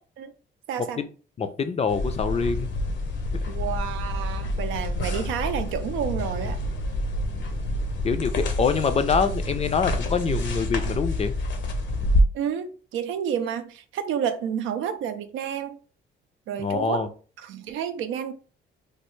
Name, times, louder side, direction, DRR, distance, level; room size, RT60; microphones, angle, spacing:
voice 1, 0.7-1.0 3.5-6.6 12.3-15.8 16.5-17.1 17.4-18.3, right 8 dB, 85° right, 0.5 m, -30 dB
voice 2, 1.4-2.7 8.0-11.3 16.6-17.1, left 5 dB, 30° left, 0.4 m, -25 dB
sound 1, 1.9-12.2, left 1 dB, 65° left, 0.7 m, -27 dB
3.3 x 2.3 x 3.1 m
cardioid pair, 90°, 20 cm